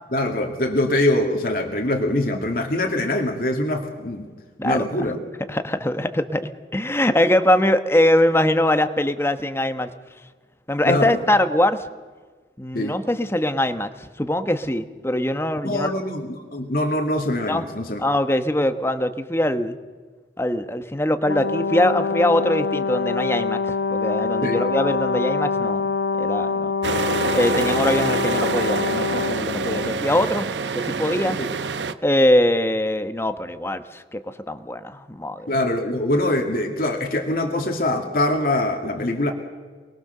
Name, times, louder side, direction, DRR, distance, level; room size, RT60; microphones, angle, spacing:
voice 1, 0.1-4.3 4.6-5.2 10.8-11.2 12.7-13.0 15.6-18.0 24.4-24.6 31.4-31.5 35.5-39.3, left 1 dB, 55° left, 2 dB, 2.2 m, -23 dB
voice 2, 4.6-5.1 5.5-9.9 10.7-11.8 12.6-15.9 17.5-17.6 18.0-19.8 20.4-25.9 26.2-26.7 27.3-30.5 30.7-31.4 32.0-35.5, left 1 dB, 15° left, 9 dB, 1.1 m, -22 dB
Brass instrument, 21.3-30.0, left 4 dB, 85° left, 0.7 m, -25 dB
sound 1, 26.8-31.9, right 4 dB, 85° right, 0.9 m, -26 dB
29.0 x 21.0 x 6.7 m, 1.4 s
head